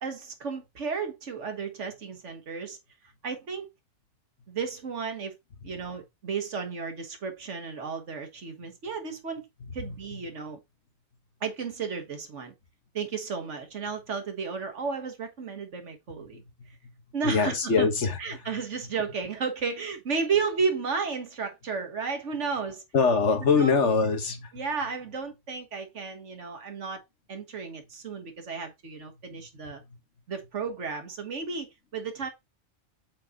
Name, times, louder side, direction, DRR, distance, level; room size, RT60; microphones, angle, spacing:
voice 1, 0.0-2.8 3.2-3.7 4.5-5.4 5.6-9.5 9.7-10.6 11.4-12.5 12.9-16.4 17.1-17.9 18.2-22.8 23.4-23.8 24.5-27.0 27.3-29.8 30.3-32.3, right 5 dB, 90° right, 1.8 m, -33 dB
voice 2, 9.6-10.2 16.3-16.9 17.2-18.4 22.9-24.5 29.3-29.7, left 5 dB, 80° left, 1.7 m, -25 dB
7.5 x 4.2 x 3.7 m
omnidirectional pair, 1.2 m